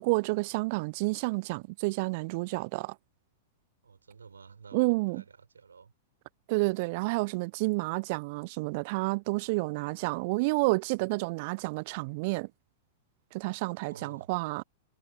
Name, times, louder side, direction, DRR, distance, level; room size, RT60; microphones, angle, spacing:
voice 1, 0.0-3.0 4.7-5.2 6.5-12.5 13.3-14.6, right 26 dB, 45° right, 0.4 m, -30 dB
voice 2, 3.8-5.9 13.8-14.3, right 5 dB, 75° right, 4.2 m, -51 dB
figure-of-eight pair, 100°, 0 cm